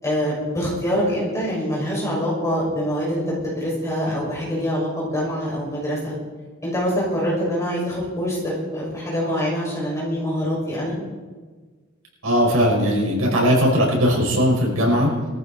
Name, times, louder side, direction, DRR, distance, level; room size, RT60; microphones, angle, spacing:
voice 1, 0.0-6.1 6.6-10.9, equal, 15° left, -5 dB, 6.4 m, -25 dB
voice 2, 12.2-15.1, equal, 85° right, -2 dB, 5.7 m, -19 dB
21.0 x 14.0 x 4.3 m, 1.4 s
head